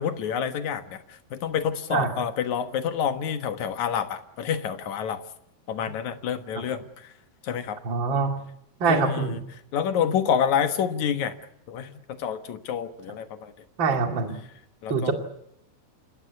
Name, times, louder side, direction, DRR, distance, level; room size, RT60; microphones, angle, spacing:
voice 1, 0.0-5.2 5.7-7.1 7.4-7.8 8.9-9.4 9.7-11.3 11.7-13.5 14.8-15.1, left 8 dB, 60° left, 9 dB, 2.4 m, -28 dB
voice 2, 7.8-8.4 8.8-9.4 13.8-14.4 14.9-15.1, right 5 dB, 35° right, 4 dB, 2.5 m, -24 dB
28.5 x 17.0 x 9.5 m, 0.78 s
omnidirectional pair, 4.4 m